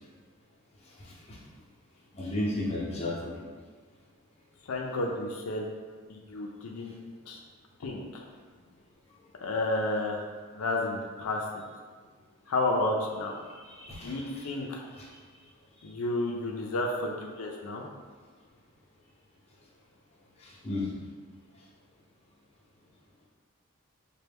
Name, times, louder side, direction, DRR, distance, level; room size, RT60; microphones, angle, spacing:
voice 1, 2.1-3.5 13.5-14.5 14.9-15.1 20.4-20.9, left 1 dB, 30° left, -5 dB, 0.6 m, -34 dB
voice 2, 4.7-5.7 6.1-6.9 7.3-7.4 7.8-8.2 9.4-10.2 10.5-11.6 12.5-13.3 14.0-14.8 15.8-17.8, left 2 dB, 80° left, 0 dB, 0.4 m, -31 dB
4.2 x 2.2 x 3.4 m, 1.5 s
head